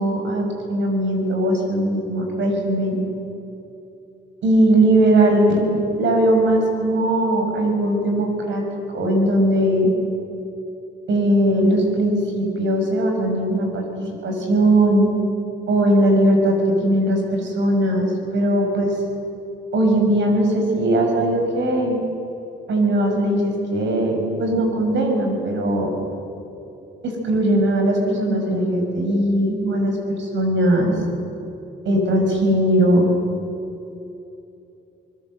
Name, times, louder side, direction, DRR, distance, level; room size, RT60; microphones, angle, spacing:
voice 1, 0.0-3.0 4.4-5.7 6.0-8.6 8.9-9.9 11.1-15.1 15.7-19.0 19.7-22.0 22.7-25.9 27.0-30.9 31.8-33.1, right 1 dB, 70° right, 2 dB, 6.6 m, -19 dB
25.0 x 20.5 x 7.9 m, 2.9 s
cardioid pair, 90°, 20 cm